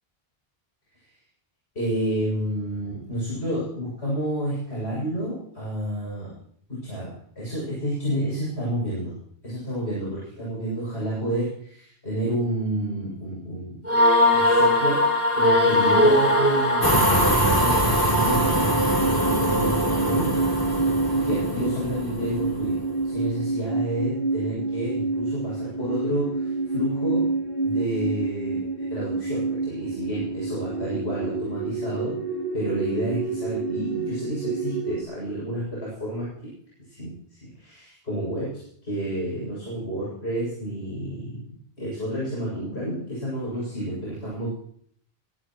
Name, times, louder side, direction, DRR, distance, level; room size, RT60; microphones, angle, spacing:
voice 1, 1.7-6.3 6.7-9.2 9.4-13.8 14.3-15.1 15.3-20.4 21.1-27.3 27.6-32.2 32.5-36.5 36.9-41.5 41.8-44.5, right 1 dB, 80° left, -6 dB, 8.3 m, -30 dB
sound 1, 13.9-17.7, left 1 dB, 10° right, 4.1 m, -19 dB
sound 2, 16.8-23.1, right 1 dB, 20° left, 2.3 m, -23 dB
sound 3, 17.9-35.0, right 3 dB, 40° right, 3.8 m, -28 dB
23.5 x 17.5 x 3.2 m, 0.62 s
omnidirectional pair, 1.1 m